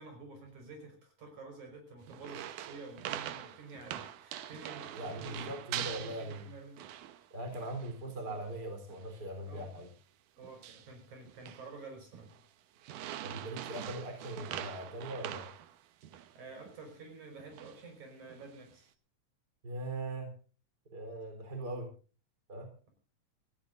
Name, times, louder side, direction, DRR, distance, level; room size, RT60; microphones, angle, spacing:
voice 1, 0.0-6.8 9.5-9.8 10.4-12.3 16.3-18.9, right 3 dB, 65° right, 4 dB, 6.2 m, -50 dB
sound 1, 2.1-7.3 7.5-8.0 8.3-8.5 8.9-9.2 9.6-9.8 10.4-10.9 11.3-11.7 12.1-12.4 12.8-16.4 16.7-16.8 17.4-17.8 18.3-18.7, right 12 dB, 85° right, 2.6 m, -43 dB
voice 2, 4.9-6.5 7.3-9.9 13.2-15.5 19.6-20.3 20.9-21.9 22.5-22.7, right 1 dB, 30° right, 4 dB, 4.2 m, -40 dB
27.0 x 15.0 x 2.5 m, 0.36 s
omnidirectional pair, 3.6 m